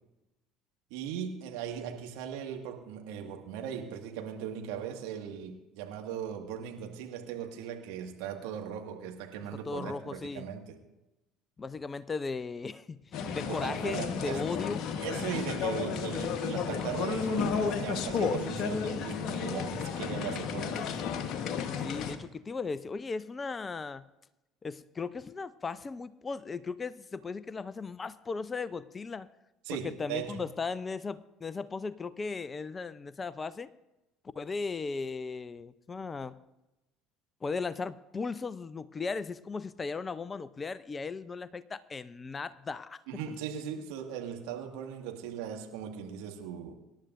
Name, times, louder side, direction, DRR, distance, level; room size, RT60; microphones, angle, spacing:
voice 1, 0.9-10.8 13.4-14.7 15.0-20.9 29.7-30.4 43.1-46.7, right 8 dB, 65° right, 3 dB, 1.9 m, -38 dB
voice 2, 9.5-10.5 11.6-13.0 13.3-14.8 21.8-24.0 24.6-29.3 29.7-33.7 34.3-36.4 37.4-43.0, left 4 dB, 25° left, 16 dB, 0.6 m, -37 dB
sound 1, 13.1-22.2, left 6 dB, 50° left, 1.3 m, -32 dB
25.0 x 11.5 x 2.6 m, 0.95 s
figure-of-eight pair, 60°, 0 cm